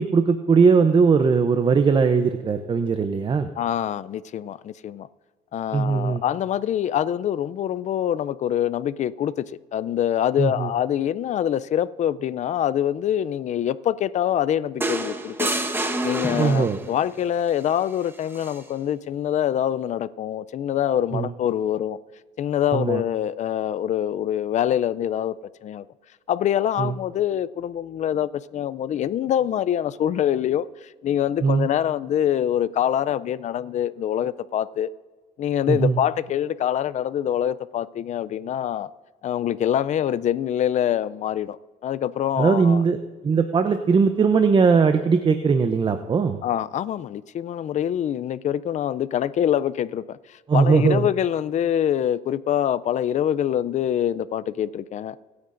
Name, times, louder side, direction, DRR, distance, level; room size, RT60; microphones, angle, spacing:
voice 1, 0.0-3.5 5.7-6.2 10.4-10.7 16.4-16.8 21.1-21.3 22.7-23.0 26.8-26.9 31.4-31.7 35.7-36.0 42.4-43.0 43.2-46.4 50.5-51.1, right 5 dB, 30° right, 0.6 m, -19 dB
voice 2, 3.6-5.1 5.5-9.4 9.7-15.5 16.0-22.0 22.4-25.3 25.6-25.8 26.3-34.9 35.4-38.9 39.2-41.6 41.8-42.8 46.4-55.2, left 10 dB, 45° left, 0.4 m, -25 dB
sound 1, 14.8-16.9 18.3-18.6, right 2 dB, 15° right, 1.0 m, -27 dB
25.0 x 9.5 x 2.6 m
cardioid pair, 110°, 17 cm